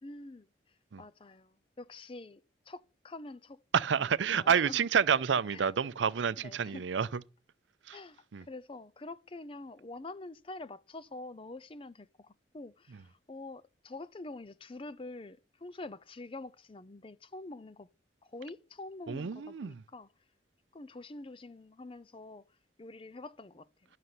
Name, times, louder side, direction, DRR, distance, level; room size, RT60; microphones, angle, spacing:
voice 1, 0.0-0.5 1.0-2.4 2.7-3.6 3.9-4.9 5.5-5.7 6.4-6.8 7.9-17.9 18.2-20.1 20.7-22.4 22.8-23.7, left 2 dB, 30° left, 0.5 m, -46 dB
voice 2, 3.7-7.1 7.9-8.0 8.3-8.4 19.1-19.8, right 7 dB, 85° right, 0.5 m, -29 dB
11.0 x 6.6 x 5.8 m
head